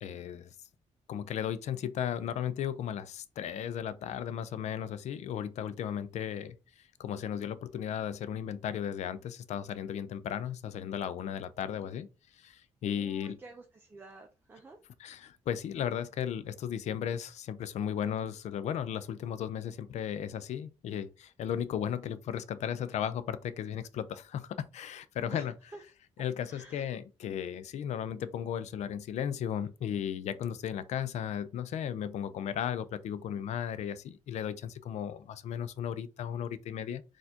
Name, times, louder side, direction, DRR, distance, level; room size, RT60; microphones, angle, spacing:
voice 1, 0.0-0.5 1.1-6.6 7.0-12.1 12.4-13.4 15.0-25.5 26.2-37.0, left 9 dB, 65° left, 0.4 m, -35 dB
voice 2, 12.9-14.8 25.3-25.8 26.4-26.9, right 2 dB, 15° right, 0.5 m, -50 dB
4.1 x 2.4 x 2.8 m
cardioid pair, 140°, 12 cm